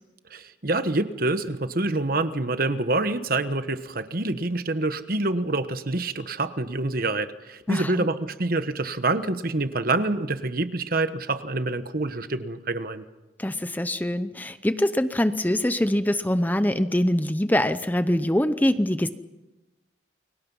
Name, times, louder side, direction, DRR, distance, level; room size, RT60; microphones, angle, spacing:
voice 1, 0.3-13.0, right 2 dB, 50° right, 11 dB, 1.2 m, -26 dB
voice 2, 7.7-8.1 13.4-19.1, left 1 dB, 10° left, 11 dB, 0.7 m, -24 dB
29.5 x 23.5 x 5.6 m, 1.1 s
head